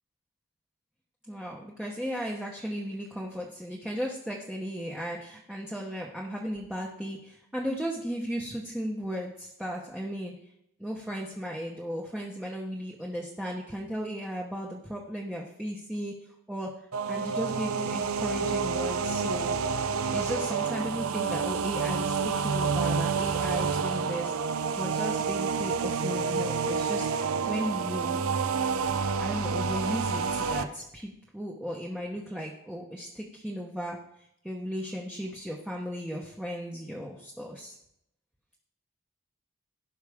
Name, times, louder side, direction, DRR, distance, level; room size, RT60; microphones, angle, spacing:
voice 1, 1.3-10.3 10.8-16.1 16.5-16.7 17.1-19.6 20.1-27.1 27.5-28.2 29.2-37.8, equal, 5° right, -3 dB, 1.0 m, -35 dB
sound 1, 16.9-30.6, right 5 dB, 85° right, 0.6 m, -29 dB
16.5 x 5.6 x 3.6 m, 0.76 s
head